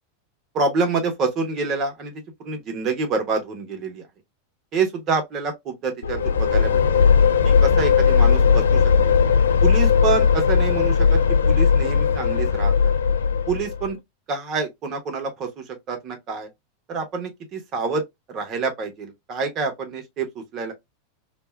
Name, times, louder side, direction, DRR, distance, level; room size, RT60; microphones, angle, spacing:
voice 1, 0.5-2.1 2.4-4.0 4.7-7.0 7.4-9.1 9.6-11.2 11.5-12.9 13.5-14.0 14.3-16.5 16.9-18.0 18.3-20.7, right 4 dB, 35° right, 1.0 m, -27 dB
sound 1, 6.0-13.9, left 6 dB, 75° left, 0.4 m, -18 dB
2.6 x 2.3 x 3.1 m
figure-of-eight pair, 90°, 0 cm